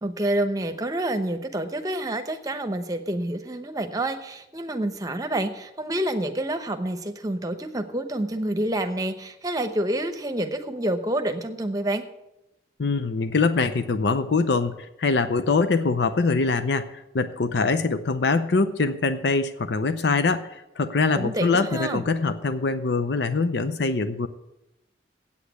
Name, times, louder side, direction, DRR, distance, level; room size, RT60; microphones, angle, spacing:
voice 1, 0.0-12.0 21.1-22.0, right 1 dB, 20° right, 7 dB, 0.8 m, -28 dB
voice 2, 12.8-24.3, left 4 dB, 70° left, 11 dB, 0.6 m, -23 dB
8.5 x 8.3 x 8.1 m, 0.90 s
head